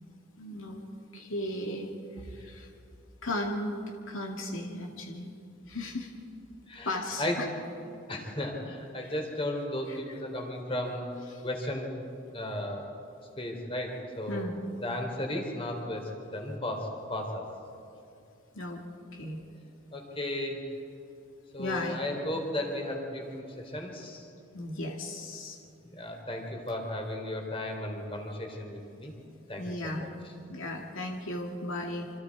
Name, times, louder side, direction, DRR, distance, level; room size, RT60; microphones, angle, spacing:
voice 1, 0.4-0.8 1.1-1.9 2.2-2.7 3.2-5.3 5.7-6.1 6.8-7.2 9.0-9.1 9.9-10.0 11.3-11.4 14.3-14.6 18.5-18.8 19.1-19.4 21.6-22.0 24.5-25.6 29.6-30.1 30.5-32.1, left 1 dB, 70° left, 0 dB, 2.3 m, -35 dB
voice 2, 6.7-7.4 8.1-11.0 11.4-11.9 12.3-12.8 13.4-14.5 14.8-16.0 16.3-17.4 19.9-20.6 21.5-24.3 25.8-29.1 29.5-30.1, left 1 dB, 25° left, 2 dB, 3.4 m, -35 dB
27.0 x 26.0 x 4.8 m, 2.6 s
head